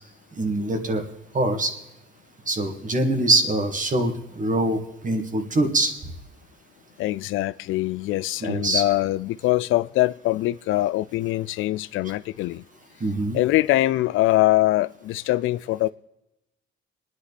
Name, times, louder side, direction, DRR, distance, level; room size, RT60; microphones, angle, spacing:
voice 1, 0.3-1.0 1.3-1.7 2.5-5.9 8.4-8.8 13.0-13.4, right 2 dB, 40° right, 2.2 m, -23 dB
voice 2, 7.0-12.6 13.3-15.9, left 16 dB, 85° left, 0.4 m, -23 dB
27.5 x 10.0 x 4.2 m
cardioid pair, 90°, 20 cm